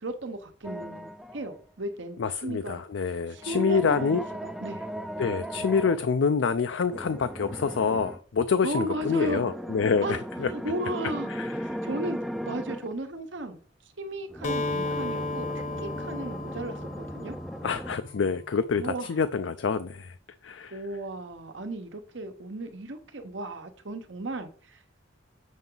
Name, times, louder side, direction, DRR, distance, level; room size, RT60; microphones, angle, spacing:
voice 1, 0.0-2.8 3.3-4.9 8.6-9.5 10.0-11.3 11.8-12.2 12.4-13.6 14.0-15.5 15.8-17.3 18.8-19.1 20.7-24.8, right 1 dB, 75° right, 1.1 m, -35 dB
sound 1, 0.6-1.5 3.3-6.0 6.9-8.2 8.8-12.9 14.3-18.0, equal, ahead, 0.4 m, -37 dB
voice 2, 2.2-4.2 5.2-10.5 11.3-11.7 17.6-20.1 20.4-20.8, left 5 dB, 75° left, 0.4 m, -27 dB
Acoustic guitar, 14.4-18.3, left 2 dB, 40° left, 0.8 m, -34 dB
7.2 x 5.8 x 3.9 m
head